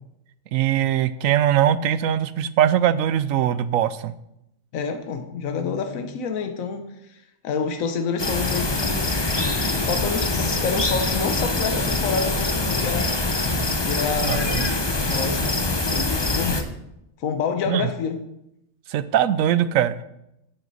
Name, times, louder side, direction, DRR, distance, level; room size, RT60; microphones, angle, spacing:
voice 1, 0.5-4.1 14.3-14.4 17.7-17.9 18.9-20.0, right 10 dB, 80° right, 14 dB, 1.0 m, -21 dB
voice 2, 4.7-9.1 9.9-13.1 13.8-14.6 15.1-15.6 15.8-16.6 17.2-18.2, left 5 dB, 80° left, 6 dB, 1.3 m, -28 dB
sound 1, 8.2-16.6, left 2 dB, 25° left, 0.7 m, -24 dB
10.0 x 9.3 x 4.1 m, 0.82 s
omnidirectional pair, 1.4 m